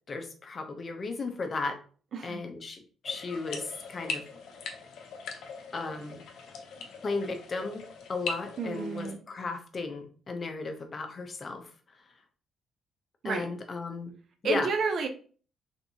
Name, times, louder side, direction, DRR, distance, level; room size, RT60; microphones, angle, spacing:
voice 1, 0.1-1.8 2.2-4.2 5.7-6.2 7.0-11.7 13.2-14.1 14.4-14.7, left 3 dB, 40° left, 6 dB, 0.6 m, -35 dB
sound 1, 3.0-9.1, left 4 dB, 80° left, 0.6 m, -41 dB
voice 2, 8.6-9.2 13.2-13.5 14.4-15.1, right 5 dB, 55° right, 6 dB, 0.5 m, -31 dB
3.4 x 2.6 x 2.7 m, 0.41 s
cardioid pair, 90°, 0 cm